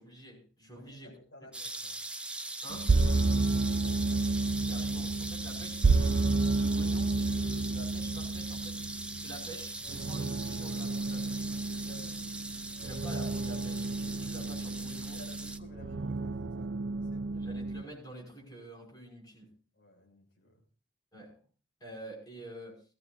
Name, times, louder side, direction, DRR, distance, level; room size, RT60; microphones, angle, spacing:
voice 1, 0.0-1.1 1.4-1.5 2.6-2.9 4.7-6.1 6.5-8.8 9.2-12.0 12.8-15.2 17.3-19.5 21.1-21.4 21.8-22.8, right 1 dB, 20° left, -1 dB, 6.0 m, -48 dB
voice 2, 0.6-2.1 3.3-4.4 11.8-12.3 15.0-17.6 19.7-20.6, equal, 65° left, 1 dB, 6.4 m, -56 dB
sound 1, 1.5-15.6, right 2 dB, 5° right, 0.8 m, -41 dB
sound 2, 2.7-17.8, right 3 dB, 70° right, 0.6 m, -31 dB
21.5 x 16.0 x 2.7 m, 0.38 s
head